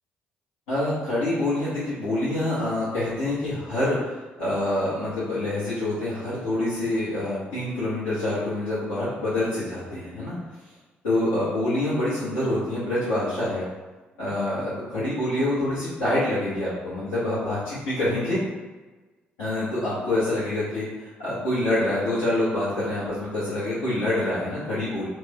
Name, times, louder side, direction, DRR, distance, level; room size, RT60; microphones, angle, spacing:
voice 1, 0.7-10.4 11.0-13.7 14.2-18.4 19.4-25.1, left 1 dB, 70° left, -13 dB, 0.8 m, -26 dB
2.5 x 2.1 x 3.8 m, 1.2 s
figure-of-eight pair, 45°, 5 cm